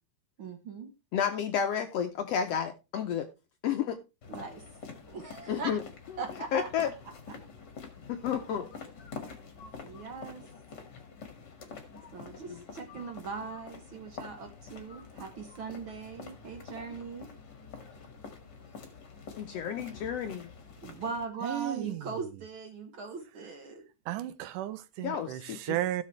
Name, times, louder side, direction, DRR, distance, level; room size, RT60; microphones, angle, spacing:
voice 1, 0.4-0.9 4.3-4.6 5.1-5.7 6.2-6.5 9.8-10.4 12.1-17.3 20.8-23.9, right 5 dB, 60° right, 1.4 m, -40 dB
voice 2, 1.1-3.3 3.6-4.0 5.5-5.8 6.5-6.9 8.1-8.7 12.5-12.6 19.4-20.5 25.0-25.8, left 8 dB, 75° left, 1.5 m, -31 dB
sound 1, 4.2-21.2, left 5 dB, 40° left, 2.1 m, -47 dB
voice 3, 21.4-22.2 24.1-26.0, right 14 dB, 85° right, 2.3 m, -34 dB
16.0 x 6.6 x 3.2 m
omnidirectional pair, 3.6 m